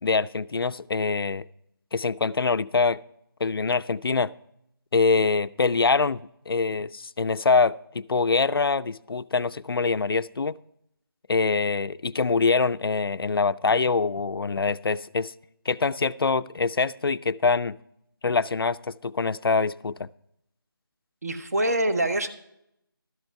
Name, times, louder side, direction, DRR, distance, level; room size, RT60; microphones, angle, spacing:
voice 1, 0.0-1.4 1.9-3.0 3.4-4.3 4.9-6.2 6.5-10.6 11.3-15.3 15.7-17.8 18.2-18.8 19.0-20.1, left 4 dB, 75° left, 16 dB, 0.4 m, -24 dB
voice 2, 21.2-22.3, right 1 dB, 45° right, 7 dB, 1.0 m, -25 dB
12.5 x 7.8 x 4.5 m, 0.77 s
figure-of-eight pair, 170°, 12 cm